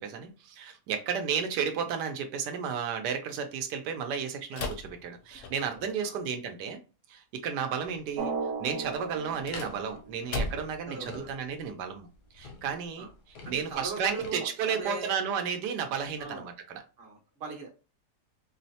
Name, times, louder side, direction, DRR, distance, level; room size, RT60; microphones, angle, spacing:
voice 1, 0.0-6.8 7.1-8.3 8.6-12.1 12.3-16.8, right 7 dB, 85° right, 1.2 m, -33 dB
sound 1, 4.5-5.9 9.2-10.9, left 2 dB, 65° left, 0.8 m, -37 dB
sound 2, 7.7-14.3, left 3 dB, 85° left, 1.4 m, -49 dB
Drum, 8.2-10.7, right 4 dB, 65° right, 0.7 m, -36 dB
voice 2, 10.6-11.3 13.0-13.1 13.4-15.1 16.2-16.5 17.0-17.7, right 3 dB, 45° right, 1.0 m, -40 dB
4.5 x 2.0 x 2.7 m
omnidirectional pair, 1.7 m